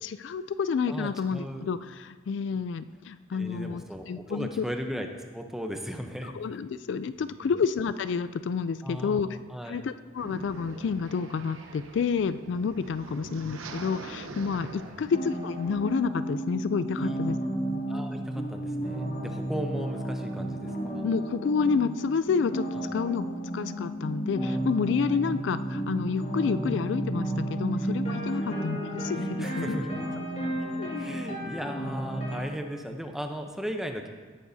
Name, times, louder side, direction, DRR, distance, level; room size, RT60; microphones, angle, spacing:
voice 1, 0.0-4.6 6.2-9.3 9.7-17.4 21.0-22.7 22.9-23.3 23.5-29.8 30.8-31.1, left 5 dB, 60° left, 13 dB, 0.3 m, -29 dB
voice 2, 0.9-1.7 3.3-5.1 5.3-6.3 7.2-7.5 8.8-9.8 14.8-15.0 17.0-17.2 17.9-21.1 22.7-22.9 28.3-28.5 29.4-30.5 30.9-34.1, equal, ahead, 4 dB, 0.7 m, -37 dB
sound 1, 10.2-16.0, right 2 dB, 80° right, 0.8 m, -43 dB
sound 2, 15.0-32.4, right 1 dB, 35° left, 2.3 m, -32 dB
17.5 x 9.3 x 2.7 m, 1.4 s
head